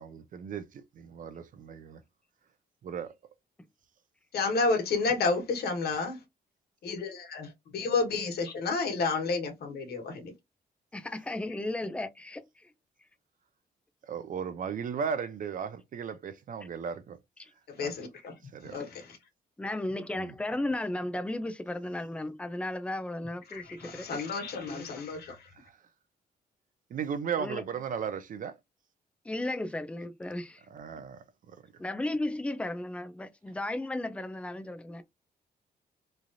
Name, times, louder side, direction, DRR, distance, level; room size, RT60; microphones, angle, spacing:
voice 1, 0.0-2.0 2.8-3.1 14.0-17.2 17.8-17.9 18.4-18.9 20.1-20.3 25.5-25.8 26.9-28.6 30.7-31.6, right 7 dB, 55° right, 0.6 m, -36 dB
voice 2, 4.3-6.2 6.8-10.3 17.7-18.4 18.6-19.2 23.5-25.5, left 4 dB, 70° left, 1.3 m, -31 dB
voice 3, 10.9-12.7 17.4-17.5 18.8-18.9 19.6-24.2 24.7-24.9 27.4-27.6 29.2-30.6 31.0-31.1 31.8-35.0, left 1 dB, 5° left, 0.4 m, -35 dB
3.2 x 2.4 x 2.5 m
cardioid pair, 115°, 17 cm